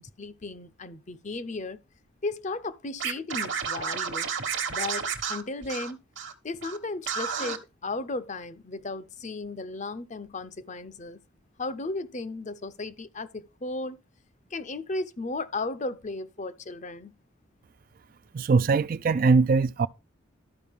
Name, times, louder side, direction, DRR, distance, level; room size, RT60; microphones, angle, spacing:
voice 1, 0.0-1.8 2.2-4.3 4.7-6.0 6.4-11.2 11.6-14.0 14.5-17.1, left 3 dB, 35° left, 0.6 m, -35 dB
Scratching (performance technique), 3.0-6.3 6.6-6.8 7.1-7.6, right 6 dB, 60° right, 1.2 m, -31 dB
voice 2, 18.3-19.9, right 4 dB, 40° right, 0.3 m, -21 dB
12.5 x 5.0 x 3.5 m
head